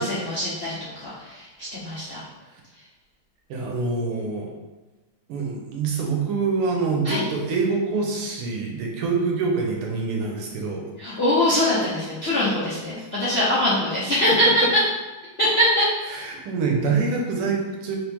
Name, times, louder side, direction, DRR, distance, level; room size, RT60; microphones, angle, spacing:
voice 1, 0.0-2.2 7.0-7.2 11.0-14.5 15.4-15.8, left 1 dB, 55° left, -10 dB, 0.7 m, -23 dB
voice 2, 3.5-4.5 5.3-10.9 13.0-13.1 14.3-14.5 16.1-18.0, right 4 dB, 90° right, 0 dB, 1.8 m, -25 dB
4.5 x 3.0 x 3.5 m, 1.2 s
omnidirectional pair, 2.4 m